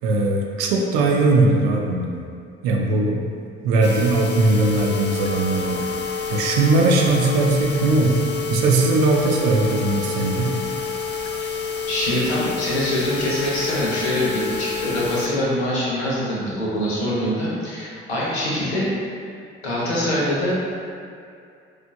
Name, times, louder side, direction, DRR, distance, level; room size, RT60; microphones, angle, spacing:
voice 1, 0.0-2.2 2.6-3.2 3.6-5.9 6.3-8.2 8.5-10.6, right 2 dB, 65° right, 0 dB, 0.5 m, -19 dB
sound 1, 3.8-15.3 15.8-15.9 16.3-16.4 16.8-16.9, left 5 dB, 35° left, 0.4 m, -28 dB
voice 2, 11.9-18.9 19.2-19.3 19.6-20.6, equal, 80° left, -6 dB, 0.7 m, -24 dB
4.6 x 2.4 x 2.2 m, 2.4 s
figure-of-eight pair, 45°, 31 cm